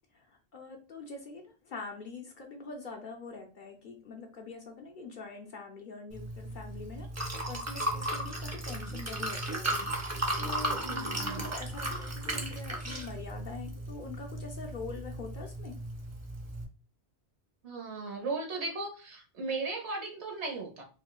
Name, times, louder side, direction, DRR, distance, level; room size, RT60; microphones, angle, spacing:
voice 1, 0.1-9.8 10.0-15.8, left 4 dB, 60° left, 2 dB, 0.6 m, -44 dB
Liquid, 6.1-16.6, right 1 dB, 25° right, 0.4 m, -35 dB
voice 2, 10.8-11.4 17.6-20.8, right 3 dB, 80° right, 1 dB, 1.2 m, -36 dB
4.2 x 2.2 x 2.2 m, 0.35 s
omnidirectional pair, 1.1 m